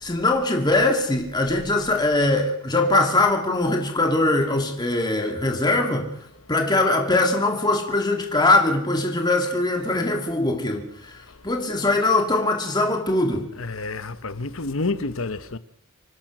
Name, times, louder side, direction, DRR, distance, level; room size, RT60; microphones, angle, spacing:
voice 1, 0.0-6.1 6.5-13.5, left 2 dB, 20° left, 2.6 m, -21 dB
voice 2, 13.5-15.6, left 3 dB, 75° left, 1.2 m, -29 dB
26.5 x 16.5 x 6.2 m
head